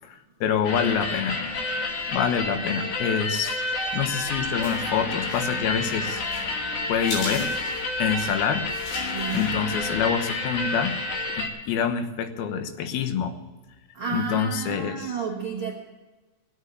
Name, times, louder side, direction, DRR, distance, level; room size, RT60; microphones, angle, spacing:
voice 1, 0.0-1.4 2.1-6.2 6.9-7.5 8.0-8.7 9.0-11.0 11.4-13.4 14.1-15.1, left 7 dB, 70° left, 8 dB, 2.8 m, -26 dB
sound 1, 0.6-11.5, left 2 dB, 55° left, 3.1 m, -29 dB
sound 2, 3.8-10.0, left 1 dB, 90° left, 6.6 m, -40 dB
voice 2, 9.1-9.5 13.9-15.7, right 6 dB, 75° right, -1 dB, 1.2 m, -32 dB
17.5 x 8.2 x 8.4 m, 1.2 s
omnidirectional pair, 4.8 m